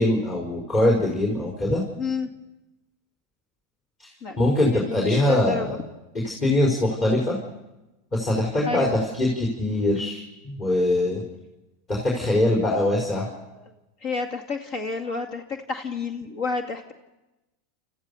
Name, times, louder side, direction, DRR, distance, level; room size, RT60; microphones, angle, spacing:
voice 1, 0.0-1.8 4.0-4.1 4.4-5.8 6.1-7.4 8.1-11.2 11.9-13.3, left 1 dB, 30° left, -1 dB, 5.0 m, -22 dB
voice 2, 2.0-2.3 4.2-4.4 4.6-5.8 8.7-8.9 13.5-13.6 14.0-16.9, left 4 dB, 55° left, 5 dB, 2.2 m, -30 dB
29.5 x 14.5 x 7.0 m, 1.0 s
hypercardioid pair, 115°, 0 cm